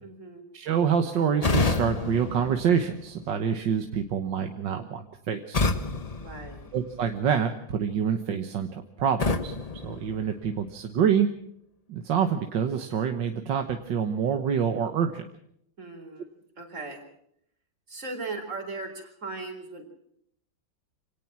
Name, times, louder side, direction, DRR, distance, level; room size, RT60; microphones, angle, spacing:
voice 1, 0.0-0.4 6.1-6.7 15.8-16.3 16.6-17.0 17.9-20.0, right 3 dB, 35° right, 3 dB, 4.4 m, -38 dB
voice 2, 0.5-5.7 6.7-9.6 9.8-11.3 11.9-15.3, right 7 dB, 70° right, 6 dB, 1.9 m, -26 dB
sound 1, 1.4-3.4 5.5-7.2 9.2-10.8, left 3 dB, 30° left, 0.7 m, -29 dB
25.5 x 18.0 x 6.0 m, 0.72 s
omnidirectional pair, 2.1 m